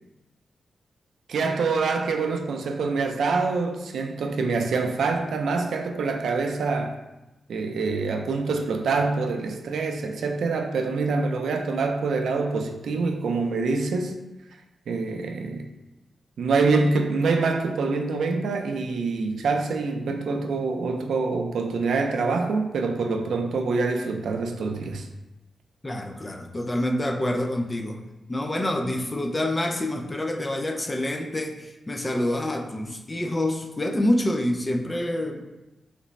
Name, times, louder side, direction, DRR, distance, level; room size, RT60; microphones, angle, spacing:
voice 1, 1.3-6.9 7.5-14.1 14.9-15.7 16.4-25.1, right 4 dB, 85° right, 5 dB, 0.3 m, -25 dB
voice 2, 25.8-28.0 28.3-35.4, left 1 dB, 20° left, 4 dB, 0.3 m, -27 dB
3.2 x 2.0 x 3.9 m, 0.98 s
wide cardioid pair, 125°, 0 cm